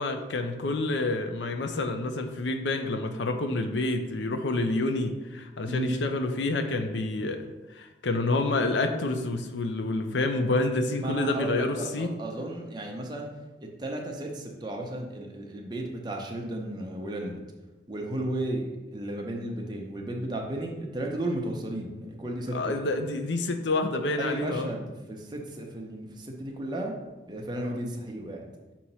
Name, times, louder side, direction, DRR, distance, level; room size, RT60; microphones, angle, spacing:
voice 1, 0.0-7.5 7.8-12.1 22.5-24.7, left 2 dB, 75° left, 7 dB, 0.6 m, -28 dB
voice 2, 11.0-13.3 13.6-17.4 17.9-22.8 24.2-26.9 27.3-28.5, right 1 dB, 25° right, 0 dB, 0.8 m, -34 dB
6.2 x 3.0 x 5.4 m, 1.1 s
head